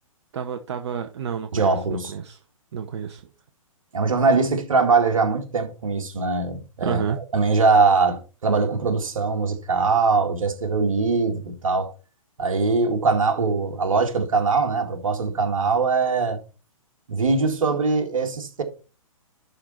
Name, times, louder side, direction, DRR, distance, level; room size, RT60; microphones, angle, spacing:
voice 1, 0.3-2.4 2.7-3.2 6.8-7.2, right 7 dB, 50° right, 0.8 m, -30 dB
voice 2, 1.5-2.1 3.9-11.9 12.4-16.4 17.1-18.6, right 4 dB, 70° right, 2.0 m, -22 dB
11.0 x 4.0 x 4.3 m
figure-of-eight pair, 125°, 18 cm